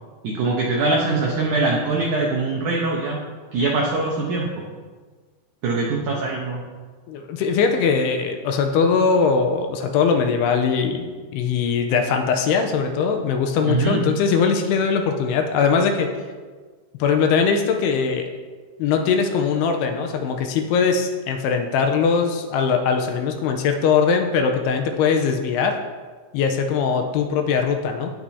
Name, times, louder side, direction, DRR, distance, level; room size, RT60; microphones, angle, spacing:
voice 1, 0.2-3.2 3.5-4.7 5.6-6.6 13.6-14.0, right 3 dB, 80° right, -2 dB, 1.8 m, -22 dB
voice 2, 7.1-16.1 17.0-18.3 18.8-25.7 26.3-28.1, left 5 dB, 85° left, 4 dB, 2.6 m, -21 dB
17.5 x 6.1 x 2.8 m, 1.4 s
omnidirectional pair, 4.9 m